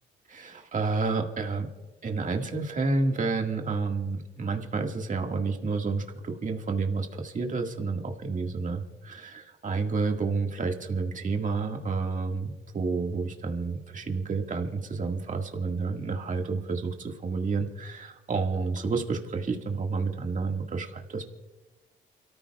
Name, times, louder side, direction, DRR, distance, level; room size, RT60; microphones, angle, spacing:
voice 1, 0.3-1.7 2.0-21.3, right 4 dB, 40° right, 3 dB, 1.9 m, -30 dB
29.0 x 14.0 x 2.4 m, 1.2 s
cardioid pair, 90°, 20 cm